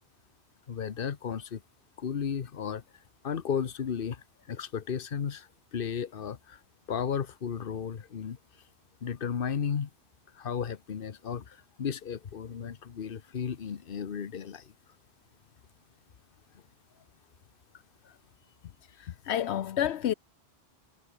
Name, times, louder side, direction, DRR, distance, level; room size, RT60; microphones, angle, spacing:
voice 1, 0.7-1.6 2.0-2.8 3.2-4.2 4.5-6.6 6.9-8.4 9.0-9.9 10.4-14.6, left 7 dB, 55° left, 1.2 m, -34 dB
voice 2, 19.0-20.1, left 10 dB, 80° left, 1.0 m, -29 dB
omnidirectional pair, 1.1 m